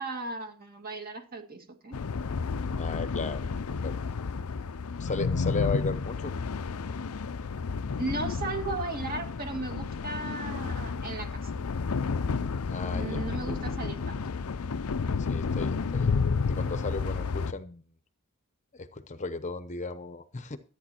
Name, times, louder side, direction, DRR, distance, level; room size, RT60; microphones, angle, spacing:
voice 1, 0.0-2.0 8.0-11.5 12.9-14.2, right 3 dB, 40° right, 4 dB, 2.1 m, -36 dB
sound 1, 1.9-17.5, left 4 dB, 70° left, 0.6 m, -31 dB
voice 2, 2.8-3.4 3.8-4.0 5.0-6.3 12.7-13.2 13.5-13.6 15.2-16.1 16.5-17.8 18.7-20.6, left 3 dB, 35° left, 11 dB, 0.8 m, -35 dB
13.5 x 9.0 x 4.4 m, 0.39 s
head